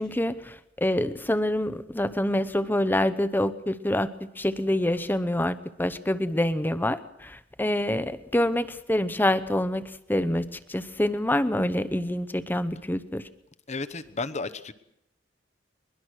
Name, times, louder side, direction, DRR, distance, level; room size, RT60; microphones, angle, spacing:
voice 1, 0.0-13.2, left 1 dB, 10° left, 13 dB, 0.8 m, -26 dB
voice 2, 13.7-14.7, left 3 dB, 40° left, 13 dB, 1.0 m, -33 dB
21.5 x 21.5 x 6.4 m, 0.79 s
head